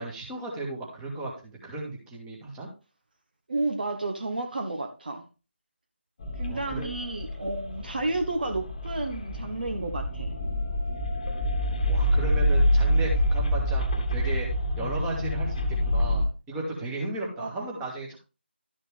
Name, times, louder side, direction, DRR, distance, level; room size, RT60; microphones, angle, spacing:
voice 1, 0.0-2.7 6.5-6.9 11.9-14.5 14.8-18.2, right 2 dB, 10° right, -2 dB, 1.9 m, -35 dB
voice 2, 3.5-5.2 6.4-10.3 17.4-17.8, right 2 dB, 50° right, 6 dB, 1.2 m, -31 dB
sound 1, 6.2-16.3, equal, 30° left, 1.4 m, -27 dB
12.5 x 6.4 x 3.4 m, 0.31 s
figure-of-eight pair, 160°, 6 cm